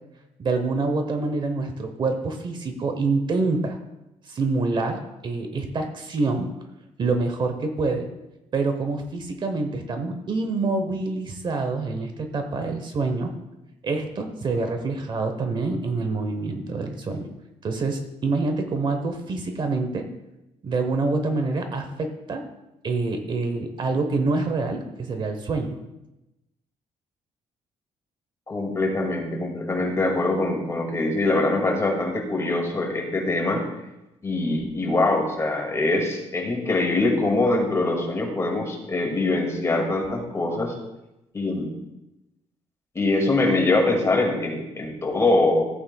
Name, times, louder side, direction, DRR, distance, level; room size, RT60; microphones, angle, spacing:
voice 1, 0.4-3.8 4.3-6.5 7.0-8.1 8.5-13.3 13.8-17.3 17.6-20.1 20.6-22.5 22.8-25.8, right 3 dB, 40° right, 6 dB, 0.9 m, -26 dB
voice 2, 28.5-33.6 34.2-40.7 41.3-41.7 43.0-45.7, left 2 dB, 25° left, 1 dB, 2.1 m, -23 dB
15.0 x 8.6 x 2.3 m, 0.94 s
cardioid pair, 135°, 12 cm